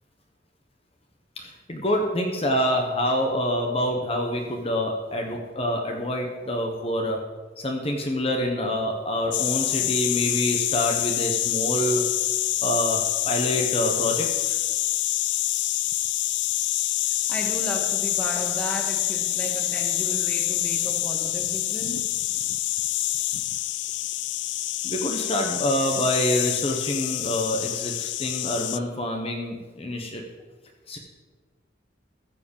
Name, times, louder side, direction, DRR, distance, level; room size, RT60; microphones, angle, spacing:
voice 1, 1.4-7.2 7.6-12.0 12.6-14.6 24.8-30.2 30.9-31.0, equal, 30° left, 2 dB, 1.1 m, -26 dB
sound 1, 9.3-28.8, left 15 dB, 70° left, 0.3 m, -26 dB
voice 2, 17.3-22.1, equal, 5° left, -1 dB, 1.9 m, -34 dB
14.5 x 5.0 x 7.0 m, 1.3 s
head